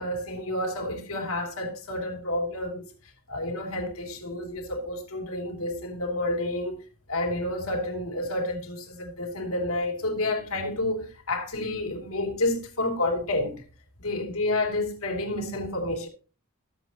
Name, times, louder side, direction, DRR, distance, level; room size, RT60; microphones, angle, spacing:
voice 1, 0.0-2.9 3.3-13.6 14.0-16.1, left 1 dB, 75° left, 2.9 m, -30 dB
13.5 x 7.8 x 3.0 m
head